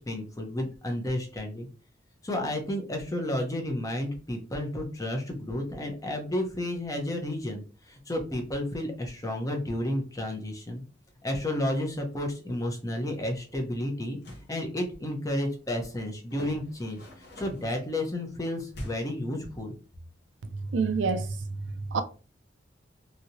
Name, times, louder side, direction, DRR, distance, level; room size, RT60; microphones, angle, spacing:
voice 1, 0.0-1.7 2.2-10.8 11.2-14.2 14.5-17.0 17.4-19.8, left 1 dB, 20° left, 0.7 m, -31 dB
sound 1, 14.0-14.5 16.3-17.8 18.7-19.2, equal, 60° left, 0.9 m, -43 dB
voice 2, 20.5-22.0, right 4 dB, 75° right, 0.5 m, -29 dB
3.1 x 2.7 x 2.7 m
head